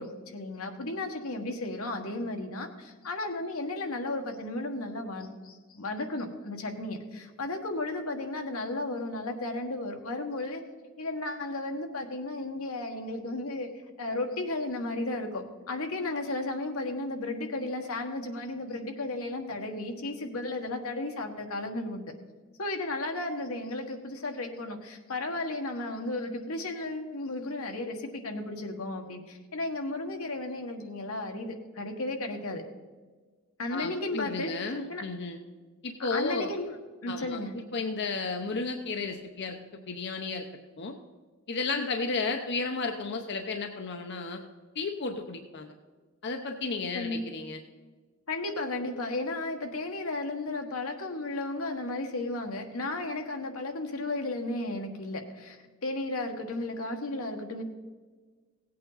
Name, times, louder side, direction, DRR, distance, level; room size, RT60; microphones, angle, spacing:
voice 1, 0.0-10.6 11.0-13.7 14.0-22.1 22.6-32.6 33.6-34.5 34.9-35.0 36.0-36.7 37.0-37.6 46.9-47.2 48.3-57.6, left 2 dB, 85° left, 4 dB, 1.5 m, -34 dB
voice 2, 33.7-35.4 35.8-36.5 37.1-40.4 40.8-40.9 41.5-44.4 44.7-45.7 46.2-47.6, left 3 dB, 55° left, 5 dB, 0.7 m, -33 dB
17.0 x 8.5 x 4.0 m, 1.4 s
head